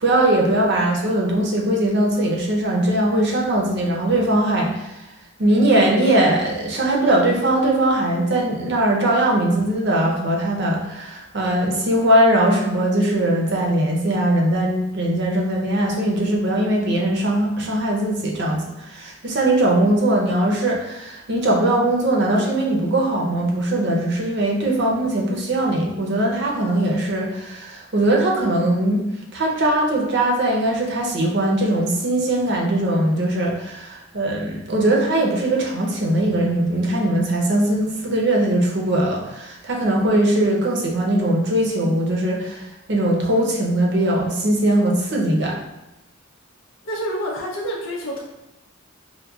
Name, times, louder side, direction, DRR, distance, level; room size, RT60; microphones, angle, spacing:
voice 1, 0.0-5.0 5.4-29.0 29.3-45.6, right 1 dB, 55° right, -2 dB, 0.7 m, -20 dB
voice 2, 46.8-48.2, equal, 75° left, -3 dB, 0.6 m, -27 dB
5.3 x 2.0 x 2.3 m, 0.98 s
head